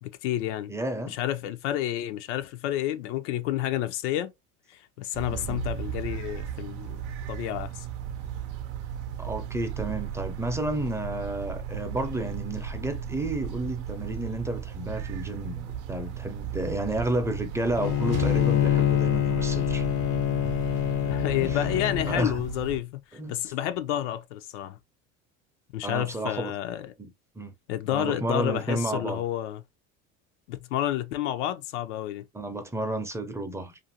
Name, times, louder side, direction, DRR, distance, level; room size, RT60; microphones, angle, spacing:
voice 1, 0.0-0.7 1.1-4.3 4.7-7.9 21.0-24.8 25.7-26.9 27.7-29.6 30.5-32.2, left 12 dB, 90° left, 0.5 m, -30 dB
voice 2, 0.7-1.2 5.3-5.6 9.2-19.9 20.4-20.5 21.4-21.8 22.1-22.4 23.1-23.3 25.8-26.5 27.0-27.5 27.9-29.2 32.3-33.8, right 1 dB, 10° right, 0.5 m, -31 dB
sound 1, 5.1-22.8, right 9 dB, 90° right, 0.6 m, -36 dB
sound 2, 17.4-19.5, right 7 dB, 50° right, 0.7 m, -40 dB
Bowed string instrument, 17.8-22.3, left 12 dB, 45° left, 0.5 m, -25 dB
2.6 x 2.5 x 2.7 m
supercardioid pair, 105°, 34 cm